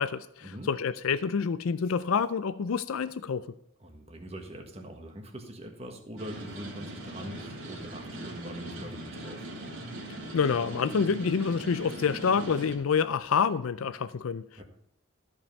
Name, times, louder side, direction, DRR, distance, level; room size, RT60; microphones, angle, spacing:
voice 1, 0.0-3.5 10.3-14.4, left 6 dB, 90° left, 0.4 m, -27 dB
voice 2, 3.8-9.5 14.5-14.6, equal, 30° right, 1.4 m, -43 dB
sound 1, 6.2-12.8, right 1 dB, 80° right, 2.7 m, -40 dB
13.5 x 5.4 x 5.4 m
head